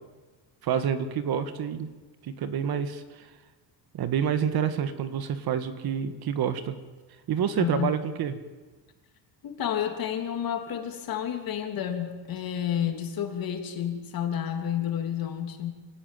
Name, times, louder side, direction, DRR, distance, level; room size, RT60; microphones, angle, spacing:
voice 1, 0.6-1.9 2.2-3.3 3.9-6.8 7.3-8.3, right 8 dB, 55° right, 11 dB, 1.8 m, -28 dB
voice 2, 7.6-7.9 9.4-15.7, left 9 dB, 50° left, 4 dB, 3.2 m, -30 dB
25.5 x 17.5 x 9.3 m, 1.3 s
cardioid pair, 165°, 45 cm